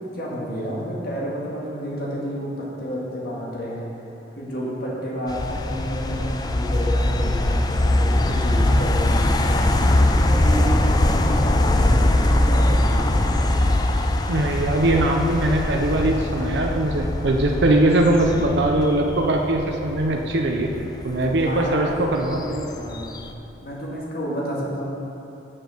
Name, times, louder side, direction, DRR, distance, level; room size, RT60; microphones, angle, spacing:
voice 1, 0.1-3.9 4.4-9.6 10.2-13.6 21.4-23.1 23.6-24.9, equal, 55° left, -5 dB, 1.9 m, -30 dB
sound 1, 5.3-23.3, left 1 dB, 20° left, 0.4 m, -22 dB
voice 2, 14.3-20.7 21.0-22.4, right 1 dB, 70° right, 2 dB, 0.6 m, -21 dB
7.7 x 6.3 x 6.5 m, 2.9 s
head